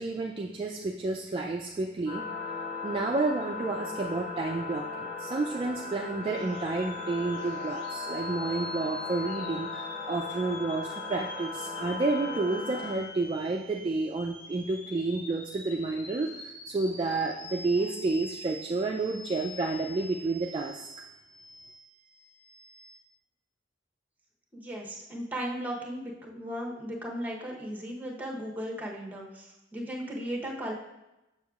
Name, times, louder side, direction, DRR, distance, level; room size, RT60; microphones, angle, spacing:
voice 1, 0.0-2.2 2.8-20.9, right 3 dB, 30° right, 0 dB, 0.3 m, -30 dB
sound 1, 2.1-13.0, left 4 dB, 30° left, 1.3 m, -37 dB
sound 2, 6.2-23.0, equal, 75° left, 1.6 m, -46 dB
voice 2, 24.5-30.7, equal, 10° right, -1 dB, 0.8 m, -36 dB
6.8 x 6.3 x 2.4 m, 0.97 s
head